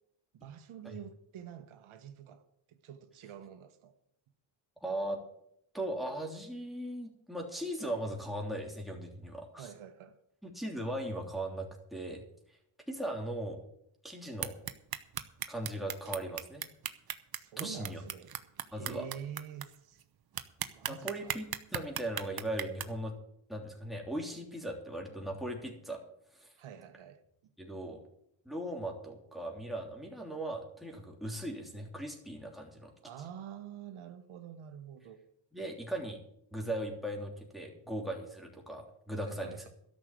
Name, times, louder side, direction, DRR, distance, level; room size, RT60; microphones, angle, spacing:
voice 1, 0.3-2.4 2.7-3.9 9.6-10.2 17.4-18.3 18.7-20.0 20.7-21.4 26.6-27.2 33.0-35.2 39.2-39.7, right 9 dB, 85° right, 1.3 m, -47 dB
voice 2, 4.8-5.2 5.7-9.7 10.4-12.2 12.9-13.6 14.0-14.5 15.5-16.6 17.6-18.0 18.7-19.1 20.8-23.1 23.5-26.0 26.3-26.5 27.6-28.0 28.4-32.9 35.5-36.2 36.5-39.7, right 1 dB, ahead, 3.2 m, -38 dB
sound 1, 14.4-19.6 20.0-20.1 20.3-22.8, right 9 dB, 50° right, 1.0 m, -36 dB
13.0 x 6.5 x 9.0 m
cardioid pair, 95°, 48 cm